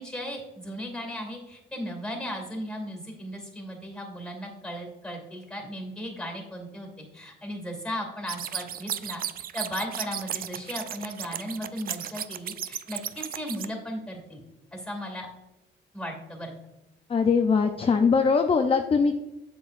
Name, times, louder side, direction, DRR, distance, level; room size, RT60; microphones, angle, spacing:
voice 1, 0.0-9.2 9.5-14.4 14.7-15.3 15.9-16.5, equal, 5° left, 2 dB, 2.5 m, -36 dB
sound 1, 8.3-13.7, right 10 dB, 45° right, 0.4 m, -34 dB
voice 2, 17.1-19.2, left 5 dB, 30° left, 5 dB, 0.5 m, -21 dB
8.2 x 7.0 x 2.6 m, 0.97 s
cardioid pair, 90°, 20 cm